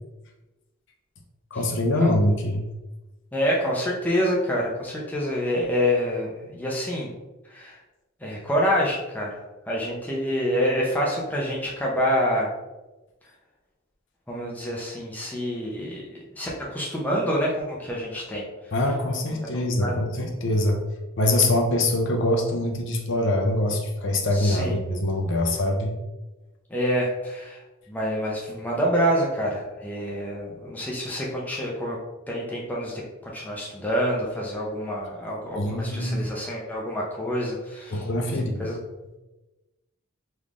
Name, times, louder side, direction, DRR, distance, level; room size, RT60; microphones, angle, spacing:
voice 1, 1.5-2.6 18.7-20.8 21.2-25.9 35.6-36.3 37.9-38.7, left 1 dB, 55° left, 3 dB, 0.5 m, -24 dB
voice 2, 3.3-7.1 7.5-7.8 8.2-9.3 9.7-12.5 14.3-18.4 19.3-19.9 24.3-24.8 26.7-27.6 27.9-32.0 32.3-32.9 33.2-37.9 38.3-38.8, equal, 5° left, -4 dB, 0.6 m, -27 dB
3.6 x 3.1 x 2.5 m, 1.1 s
head